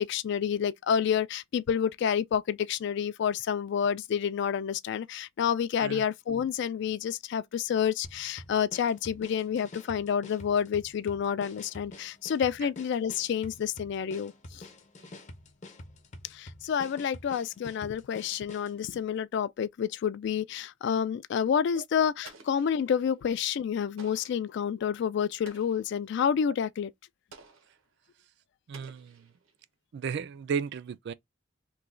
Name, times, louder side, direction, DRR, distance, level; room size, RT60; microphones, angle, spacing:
voice 1, 0.0-14.6 16.3-26.9, left 8 dB, 60° left, 0.3 m, -29 dB
sound 1, 8.0-18.8, left 2 dB, 40° left, 0.7 m, -48 dB
Explosion, 22.2-23.2 24.0-24.5 25.5-26.0 27.3-27.9 28.7-29.6, right 4 dB, 85° right, 0.8 m, -53 dB
voice 2, 28.7-29.3 29.9-31.1, right 6 dB, 60° right, 0.3 m, -34 dB
3.1 x 2.2 x 3.6 m
head